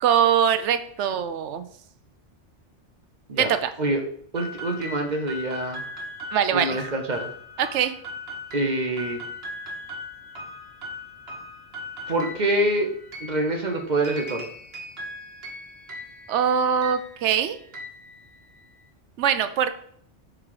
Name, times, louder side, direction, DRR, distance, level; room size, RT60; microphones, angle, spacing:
voice 1, 0.0-1.6 3.4-3.7 6.3-6.8 7.6-7.9 16.3-17.6 19.2-19.8, right 8 dB, 80° right, 11 dB, 0.9 m, -22 dB
voice 2, 4.3-5.8 6.5-7.3 8.5-9.2 12.1-12.9 13.2-14.4, right 1 dB, 45° right, 3 dB, 0.8 m, -25 dB
sound 1, 4.4-18.8, left 1 dB, 60° right, 1.4 m, -39 dB
6.1 x 3.7 x 4.7 m, 0.62 s
omnidirectional pair, 1.2 m